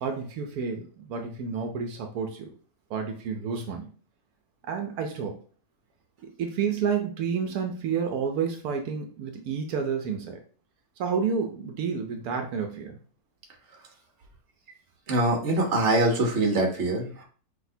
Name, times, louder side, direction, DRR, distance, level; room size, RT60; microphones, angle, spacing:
voice 1, 0.0-2.5 2.9-3.9 4.6-5.4 6.2-10.4 11.0-13.0, right 6 dB, 85° right, 4 dB, 1.2 m, -30 dB
voice 2, 15.1-17.2, right 2 dB, 55° right, 1 dB, 1.3 m, -24 dB
6.0 x 2.9 x 2.7 m, 0.42 s
omnidirectional pair, 1.5 m